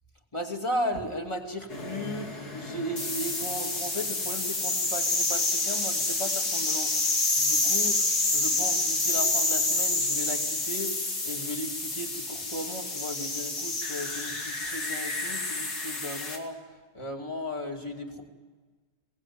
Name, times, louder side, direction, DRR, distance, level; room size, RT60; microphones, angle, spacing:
voice 1, 0.3-8.1 8.3-16.6 16.9-18.2, equal, 20° left, 2 dB, 2.6 m, -36 dB
sound 1, 1.7-16.4, left 2 dB, 70° left, 3.2 m, -28 dB
23.0 x 19.0 x 9.3 m, 1.4 s
omnidirectional pair, 1.7 m